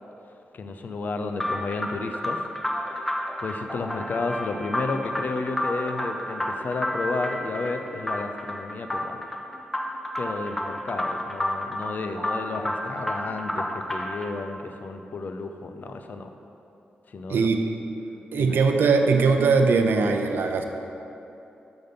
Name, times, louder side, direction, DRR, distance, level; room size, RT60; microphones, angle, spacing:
voice 1, 0.5-2.4 2.8-9.3 10.2-16.3 17.1-17.5 18.3-18.5, left 3 dB, 55° left, 6 dB, 0.4 m, -32 dB
sound 1, 1.4-14.3, left 1 dB, 10° left, 0.5 m, -31 dB
voice 2, 18.3-20.7, right 4 dB, 75° right, 4 dB, 0.5 m, -20 dB
6.6 x 4.0 x 5.1 m, 2.9 s
cardioid pair, 85°, 4 cm